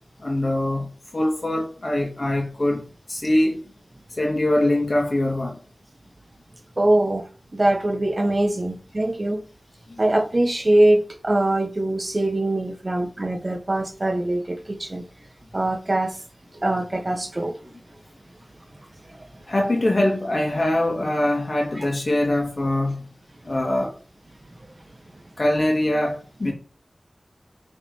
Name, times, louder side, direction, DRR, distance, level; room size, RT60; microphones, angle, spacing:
voice 1, 0.2-0.9 1.1-2.8 3.1-3.6 4.1-5.6 9.9-10.0 19.5-23.1 23.4-24.0 25.4-26.5, left 1 dB, 55° left, 2.7 m, -23 dB
voice 2, 6.8-7.2 7.5-9.4 10.0-15.0 15.5-16.1 16.6-17.5 19.1-19.2 21.7-21.8, right 1 dB, 40° right, 1.5 m, -22 dB
9.1 x 4.5 x 4.8 m
wide cardioid pair, 70°, 0 cm